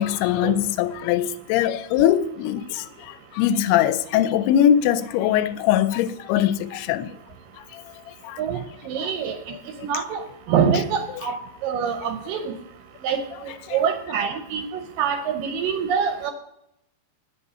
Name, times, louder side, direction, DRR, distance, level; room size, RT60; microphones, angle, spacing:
voice 1, 0.0-2.9 3.4-7.1 8.2-8.4 13.7-13.8, left 11 dB, 90° left, 2.6 m, -21 dB
voice 2, 8.8-9.6 9.8-10.2 10.5-11.4 11.6-12.5 13.0-13.2 13.7-14.6 15.0-16.3, right 7 dB, 75° right, 2.1 m, -24 dB
8.5 x 6.9 x 5.6 m
omnidirectional pair, 4.5 m